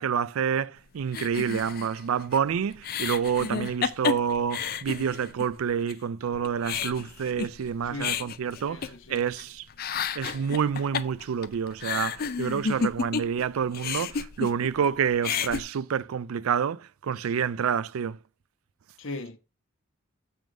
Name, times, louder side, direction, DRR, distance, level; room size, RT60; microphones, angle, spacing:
voice 1, 0.0-9.6 10.2-18.2, right 7 dB, 90° right, 0.4 m, -28 dB
sound 1, 1.1-5.5 5.9-6.0 6.3-9.4 9.7-13.4 13.7-14.9 15.1-15.6, left 6 dB, 45° left, 0.5 m, -31 dB
voice 2, 7.8-8.2 8.6-9.3 19.0-19.4, left 2 dB, 65° left, 1.0 m, -38 dB
7.7 x 3.5 x 6.1 m
head